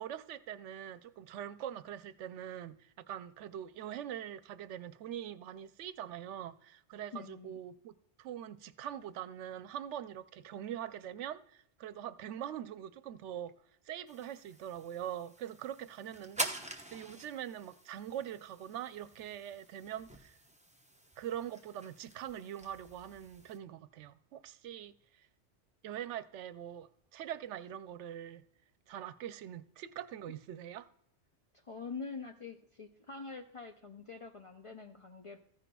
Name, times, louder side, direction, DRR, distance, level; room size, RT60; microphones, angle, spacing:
voice 1, 0.0-13.5 13.9-20.4 21.2-25.3 25.8-28.4 28.9-30.9, right 10 dB, 85° right, 0.9 m, -43 dB
voice 2, 7.1-7.6 31.6-35.4, left 4 dB, 45° left, 0.4 m, -45 dB
sound 1, 14.1-23.6, right 1 dB, 5° right, 0.8 m, -46 dB
14.5 x 10.0 x 2.3 m
omnidirectional pair, 1.2 m